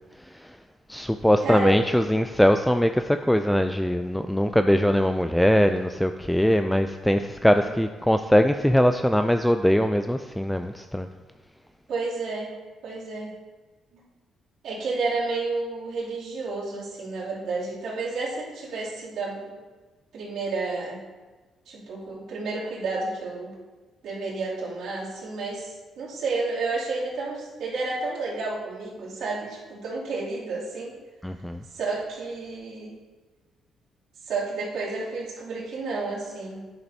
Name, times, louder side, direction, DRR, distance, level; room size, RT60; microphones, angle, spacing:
voice 1, 0.2-0.6 0.9-11.1 31.2-31.6, equal, 5° left, 7 dB, 0.3 m, -22 dB
voice 2, 1.4-1.8 11.9-12.5 12.8-13.3 13.9-14.1 14.6-19.6 20.1-21.0 21.7-23.5 24.0-31.0 31.7-33.0 34.2-36.6, right 3 dB, 75° right, -7 dB, 2.8 m, -31 dB
10.0 x 7.1 x 2.8 m, 1.3 s
cardioid pair, 90°, 0 cm